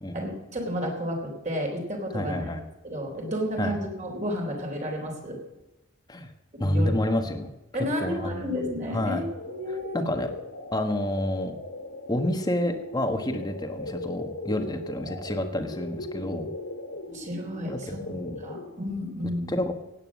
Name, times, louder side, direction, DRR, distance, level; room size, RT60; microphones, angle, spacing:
voice 1, 0.1-2.5 2.8-5.4 6.5-7.2 7.7-10.0 17.1-19.5, equal, 35° right, 1 dB, 3.7 m, -32 dB
voice 2, 2.1-2.6 3.6-3.7 6.1-6.3 6.6-7.5 7.7-8.7 8.9-9.2 9.7-10.3 10.7-11.5 12.1-16.5 17.7-18.4 19.5-19.7, left 1 dB, 20° left, 6 dB, 1.4 m, -29 dB
sound 1, 8.9-18.9, left 2 dB, 85° left, 3.4 m, -39 dB
16.5 x 9.2 x 6.3 m, 1.0 s
head